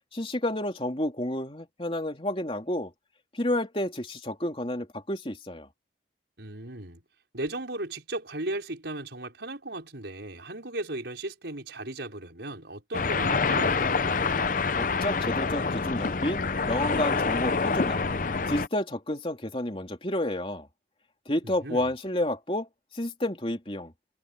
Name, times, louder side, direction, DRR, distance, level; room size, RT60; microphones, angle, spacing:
voice 1, 0.1-2.9 3.3-5.7 14.8-18.0 18.4-20.7 21.2-23.9, left 1 dB, 30° left, 3.3 m, -30 dB
voice 2, 6.4-7.0 7.3-13.9 21.4-21.9, right 2 dB, 75° right, 5.3 m, -36 dB
sound 1, 12.9-18.7, left 4 dB, 45° left, 0.7 m, -26 dB
head